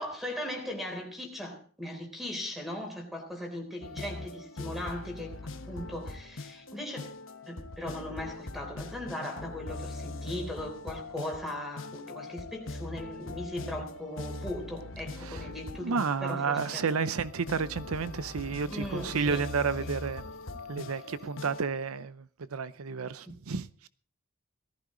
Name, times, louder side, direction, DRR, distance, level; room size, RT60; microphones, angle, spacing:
voice 1, 0.0-5.4 5.7-7.1 7.5-17.1 18.7-19.4 19.8-19.9 23.3-23.4, left 1 dB, ahead, 3.9 m, -38 dB
sound 1, 3.8-21.6, left 2 dB, 60° left, 1.2 m, -41 dB
voice 2, 15.8-20.2 20.7-23.9, right 5 dB, 80° right, 0.6 m, -31 dB
18.5 x 14.5 x 3.9 m
head